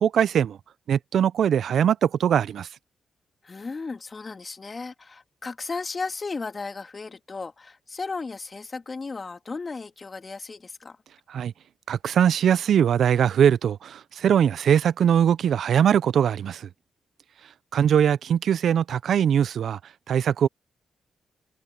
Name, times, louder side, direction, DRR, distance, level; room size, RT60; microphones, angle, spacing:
voice 1, 0.0-0.6 0.9-2.7 11.3-11.5 11.9-16.7 17.7-19.8 20.1-20.5, right 9 dB, 70° right, 0.8 m, -21 dB
voice 2, 3.4-11.0, left 4 dB, 40° left, 3.2 m, -35 dB
hypercardioid pair, 40°, 0 cm